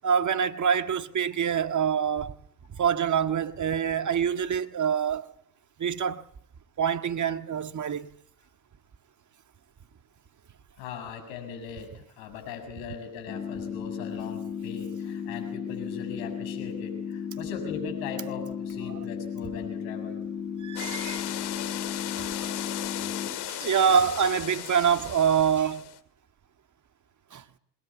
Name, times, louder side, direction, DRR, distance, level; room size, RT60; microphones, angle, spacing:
voice 1, 0.0-2.3 2.8-5.3 5.8-6.2 6.8-8.1 20.6-21.3 22.1-22.5 23.5-25.9 27.3-27.4, right 7 dB, 40° right, 1.8 m, -25 dB
voice 2, 10.8-20.2, left 6 dB, 75° left, 7.1 m, -40 dB
sound 1, 13.3-23.3, left 7 dB, 35° left, 7.0 m, -35 dB
sound 2, 20.7-26.0, left 13 dB, 60° left, 2.3 m, -36 dB
26.5 x 21.0 x 8.4 m
hypercardioid pair, 55°, 46 cm